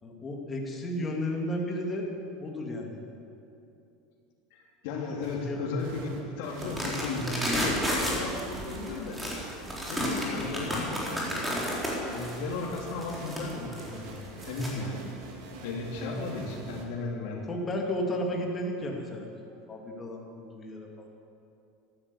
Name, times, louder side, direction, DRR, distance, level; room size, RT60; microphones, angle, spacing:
voice 1, 0.0-2.1 2.4-3.0 5.5-5.6 17.5-19.3 19.7-21.1, left 1 dB, 20° left, 0 dB, 2.6 m, -33 dB
voice 2, 4.5-9.2 9.9-11.5 12.0-15.0 15.3-17.4, left 3 dB, 70° left, 0 dB, 2.7 m, -35 dB
sound 1, 5.2-5.4 5.8-16.8, right 3 dB, 70° right, 2.6 m, -45 dB
sound 2, 6.6-14.7, equal, 5° right, 3.8 m, -32 dB
14.0 x 12.5 x 8.4 m, 2.7 s
supercardioid pair, 130°, 0 cm